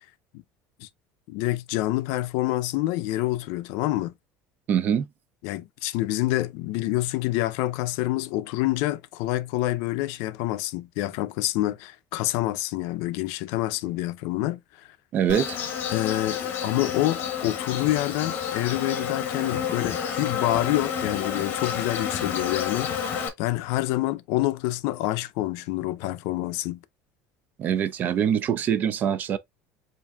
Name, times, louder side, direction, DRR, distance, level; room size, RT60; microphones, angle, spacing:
voice 1, 1.3-4.1 5.4-14.9 15.9-26.8, left 16 dB, 70° left, 0.4 m, -27 dB
voice 2, 4.7-5.1 15.1-15.6 27.6-29.4, right 8 dB, 35° right, 0.4 m, -24 dB
Insect, 15.3-23.3, left 7 dB, 40° left, 0.8 m, -30 dB
7.0 x 2.5 x 2.2 m
cardioid pair, 155°, 5 cm